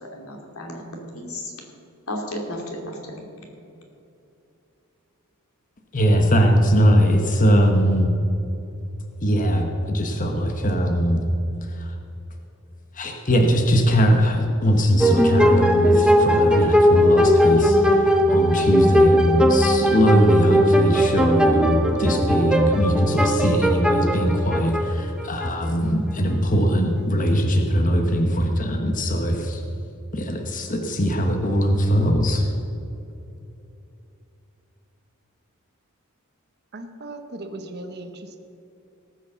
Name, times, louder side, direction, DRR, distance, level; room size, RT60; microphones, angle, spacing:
voice 1, 0.1-1.5 2.1-3.2, left 1 dB, 70° left, 1 dB, 2.6 m, -33 dB
voice 2, 5.9-8.1 9.2-11.2 13.0-29.6 30.1-32.5, equal, 35° left, 3 dB, 1.1 m, -20 dB
sound 1, 15.0-25.5, equal, 5° right, 0.8 m, -19 dB
voice 3, 36.7-38.4, right 2 dB, 45° right, 7 dB, 1.0 m, -37 dB
18.5 x 6.3 x 6.9 m, 2.8 s
head